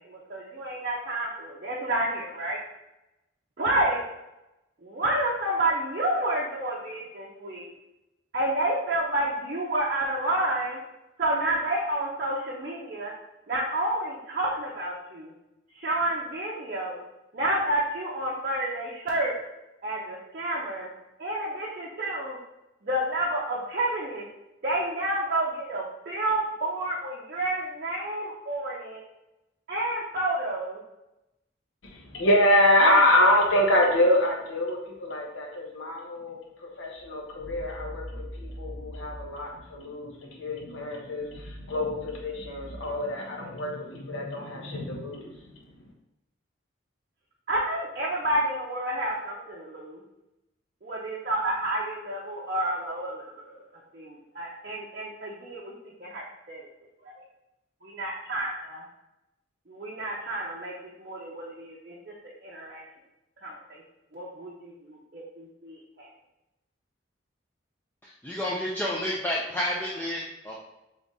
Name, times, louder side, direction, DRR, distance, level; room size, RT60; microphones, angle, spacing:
voice 1, 0.0-2.6 3.6-4.0 4.8-7.7 8.3-10.8 11.2-13.1 13.5-15.3 15.8-17.0 17.3-19.3 19.8-20.9 21.2-22.4 22.8-24.2 24.6-29.0 29.7-30.8 32.8-32.9 47.5-50.0 50.8-53.6 53.9-55.7 56.0-56.6 57.1-57.2 57.8-58.8 59.7-60.7 61.0-62.1 62.4-62.8 63.4-63.8 64.1-66.1, right 1 dB, 50° right, -6 dB, 0.6 m, -29 dB
voice 2, 31.9-45.6, left 1 dB, 80° left, 0 dB, 0.9 m, -25 dB
voice 3, 68.0-70.6, left 1 dB, 10° left, -4 dB, 0.4 m, -30 dB
3.7 x 3.5 x 3.9 m, 0.93 s
head